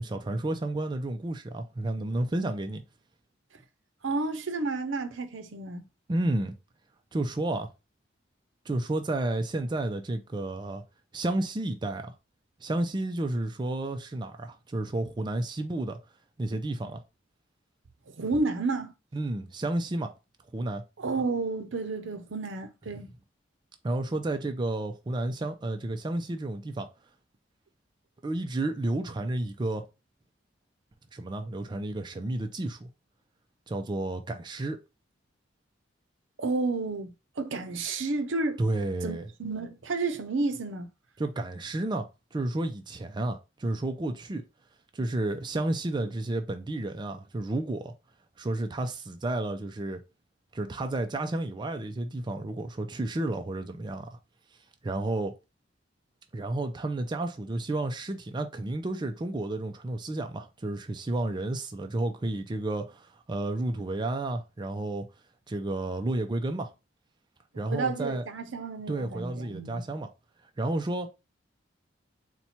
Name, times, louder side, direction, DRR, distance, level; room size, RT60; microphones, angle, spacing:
voice 1, 0.0-2.8 6.1-6.6 7.1-7.7 8.7-10.8 11.1-12.1 12.6-16.0 16.4-17.0 19.1-20.1 20.5-20.8 23.8-26.9 28.2-29.8 31.1-32.9 33.7-34.8 38.6-39.3 41.2-44.4 44.9-47.9 48.4-50.0 50.5-54.2 54.8-55.3 56.3-65.1 65.5-66.7 67.6-68.2 68.9-70.1 70.6-71.1, right 2 dB, 25° right, 0.4 m, -31 dB
voice 2, 4.0-5.9 18.1-18.9 21.0-23.1 36.4-38.6 39.0-40.9 67.7-69.8, right 3 dB, 85° right, 0.7 m, -31 dB
4.2 x 2.2 x 4.2 m
head